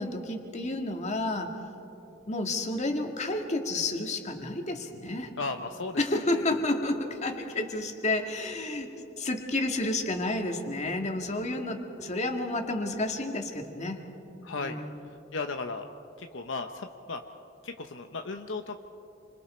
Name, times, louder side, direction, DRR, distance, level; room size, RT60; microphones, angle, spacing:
voice 1, 0.0-1.5 2.3-5.3 6.0-14.0 14.6-15.1, left 2 dB, 35° left, 3 dB, 2.0 m, -31 dB
voice 2, 5.4-6.0 14.4-14.8 15.3-15.9 16.2-17.2 17.6-18.8, left 3 dB, 70° left, 5 dB, 0.9 m, -35 dB
29.0 x 25.5 x 4.4 m, 2.9 s
head